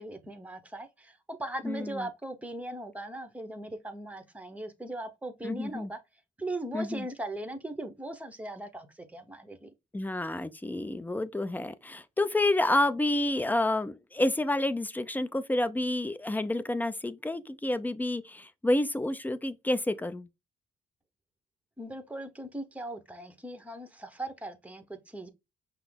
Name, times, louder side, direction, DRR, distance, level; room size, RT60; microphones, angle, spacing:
voice 1, 0.0-6.0 6.4-9.7 21.8-25.3, right 1 dB, 5° right, 0.9 m, -39 dB
voice 2, 1.6-2.0 5.4-5.9 6.7-7.0 9.9-20.3, left 1 dB, 10° left, 0.5 m, -29 dB
5.6 x 2.0 x 3.8 m
cardioid pair, 90°, 20 cm